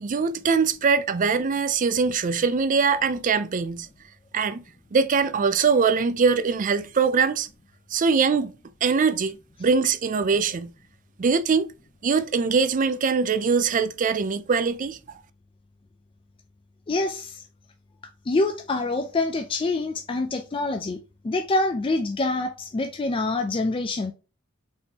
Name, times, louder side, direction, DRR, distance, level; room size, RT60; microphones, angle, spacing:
voice 1, 0.0-3.9 4.3-4.6 4.9-7.5 7.9-8.5 8.8-10.7 11.2-11.7 12.0-15.0, right 5 dB, 40° right, 0.4 m, -22 dB
voice 2, 16.9-17.4 18.3-21.0 21.2-24.1, left 2 dB, 25° left, 0.4 m, -26 dB
4.1 x 3.7 x 2.9 m
head